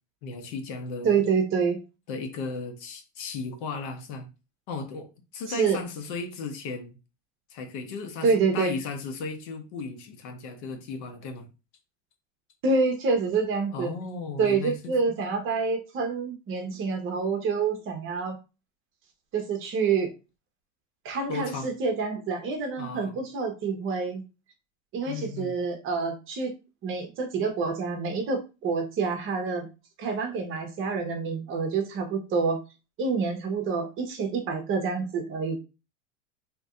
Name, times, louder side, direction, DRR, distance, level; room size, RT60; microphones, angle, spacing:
voice 1, 0.2-1.2 2.1-4.3 4.7-5.1 5.3-7.0 7.5-11.5 13.7-15.2 21.3-21.7 22.8-23.2 25.1-25.5, left 4 dB, 60° left, 1.0 m, -35 dB
voice 2, 1.0-1.8 5.5-5.8 8.2-8.7 12.6-13.9 14.4-18.4 19.3-20.1 21.0-24.2 24.9-26.5 26.8-29.7 30.0-32.6 33.0-35.6, right 4 dB, 35° right, 0.9 m, -27 dB
2.9 x 2.6 x 3.6 m
supercardioid pair, 135°, 37 cm